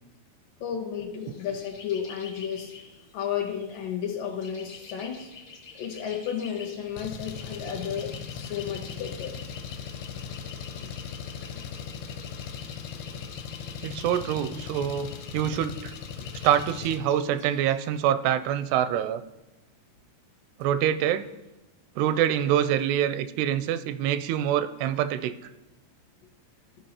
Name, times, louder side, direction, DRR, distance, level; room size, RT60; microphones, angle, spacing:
voice 1, 0.6-2.7 3.1-5.3 5.8-9.4 10.8-10.9, left 8 dB, 70° left, 0 dB, 2.3 m, -33 dB
sound 1, 1.2-17.8, left 5 dB, 50° left, 1.5 m, -48 dB
Engine, 7.0-17.0, left 7 dB, 90° left, 2.6 m, -39 dB
voice 2, 13.8-15.9 16.4-19.2 20.6-21.3 22.0-25.3, right 10 dB, 85° right, 12 dB, 2.6 m, -25 dB
14.5 x 5.5 x 2.9 m, 1.0 s
omnidirectional pair, 4.6 m